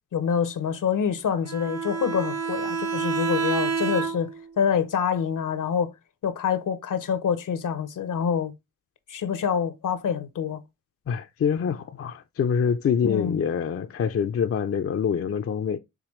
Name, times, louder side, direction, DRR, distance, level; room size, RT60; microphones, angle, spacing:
voice 1, 0.1-5.9 6.2-8.5 9.1-10.6 13.0-13.4, left 7 dB, 75° left, 0.8 m, -26 dB
Bowed string instrument, 1.4-4.5, right 5 dB, 55° right, 0.8 m, -28 dB
voice 2, 11.1-15.8, left 7 dB, 45° left, 0.4 m, -25 dB
5.0 x 3.4 x 3.1 m
cardioid pair, 60°, 32 cm